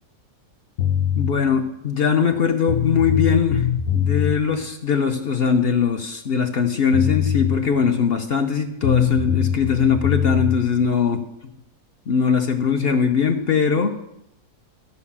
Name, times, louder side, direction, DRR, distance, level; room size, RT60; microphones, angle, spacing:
sound 1, 0.8-1.3 2.3-2.4 2.7-4.3 6.6-6.7 6.9-7.6 8.8-10.6, left 9 dB, 65° left, 1.3 m, -21 dB
voice 1, 1.1-3.7 3.9-11.2 12.1-13.9, left 6 dB, 50° left, 6 dB, 0.8 m, -21 dB
13.5 x 5.6 x 7.2 m, 0.82 s
omnidirectional pair, 1.7 m